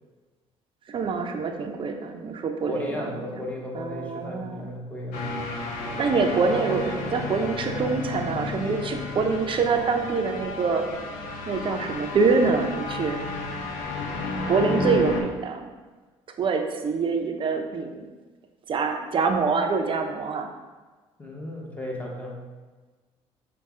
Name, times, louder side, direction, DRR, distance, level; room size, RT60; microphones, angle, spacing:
voice 1, 0.9-3.5 3.7-4.7 6.0-10.9 11.5-13.2 14.5-15.7 16.4-18.1 18.7-20.5, right 4 dB, 45° right, 4 dB, 0.6 m, -25 dB
voice 2, 2.6-5.2 21.2-22.4, left 1 dB, 10° left, -2 dB, 1.1 m, -34 dB
sound 1, 5.1-15.2, left 3 dB, 85° left, 0.6 m, -32 dB
5.4 x 2.3 x 3.6 m, 1.3 s
supercardioid pair, 75°, 12 cm